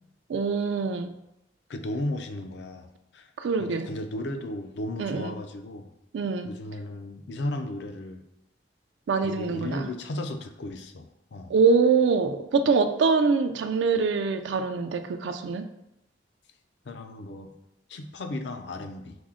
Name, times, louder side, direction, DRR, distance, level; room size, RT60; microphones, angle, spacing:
voice 1, 0.3-1.1 3.4-3.9 5.0-5.3 6.1-6.5 9.1-9.8 11.5-15.6, right 4 dB, 80° right, 8 dB, 0.4 m, -24 dB
voice 2, 1.7-2.9 3.1-3.3 3.6-5.9 6.4-8.2 9.2-11.5 16.8-17.5 17.9-19.2, left 1 dB, 70° left, 7 dB, 0.4 m, -35 dB
6.0 x 2.1 x 3.6 m, 0.83 s
head